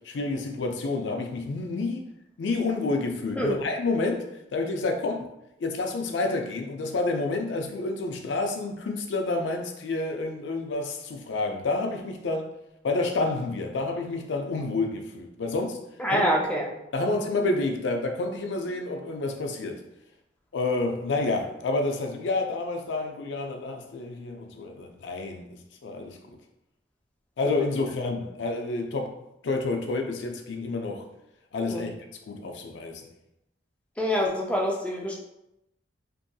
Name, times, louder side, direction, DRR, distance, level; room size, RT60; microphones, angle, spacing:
voice 1, 0.1-2.1 2.4-5.3 5.6-12.5 12.8-15.8 16.1-16.3 16.9-19.8 20.5-25.5 25.8-26.2 27.4-29.2 29.4-31.1 31.5-32.0 32.3-33.0, left 3 dB, 70° left, 0.4 m, -29 dB
voice 2, 16.0-16.7 31.7-31.9 34.0-35.2, equal, 5° left, 0.4 m, -25 dB
2.6 x 2.6 x 2.2 m
head